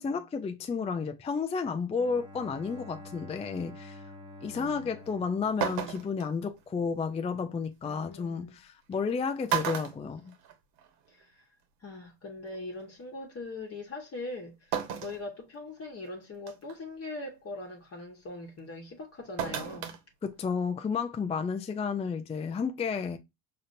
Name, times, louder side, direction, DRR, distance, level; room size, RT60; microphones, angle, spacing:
voice 1, 0.0-4.0 4.4-10.3 20.2-23.2, left 5 dB, 15° left, 0.4 m, -32 dB
Bowed string instrument, 1.9-6.6, left 1 dB, 10° right, 1.2 m, -48 dB
voice 2, 4.4-4.9 7.9-8.6 11.1-11.4 11.8-20.0, left 2 dB, 30° left, 1.3 m, -41 dB
sound 1, 5.1-5.2 5.6-6.3 7.9-8.0 8.9-9.1 9.5-10.9 11.2-11.3 12.5-12.6 14.7-15.2 15.8-15.9 16.5-16.8 19.4-20.0 20.3-20.4, right 9 dB, 65° right, 1.2 m, -33 dB
4.9 x 2.8 x 2.6 m
supercardioid pair, 85°, 45 cm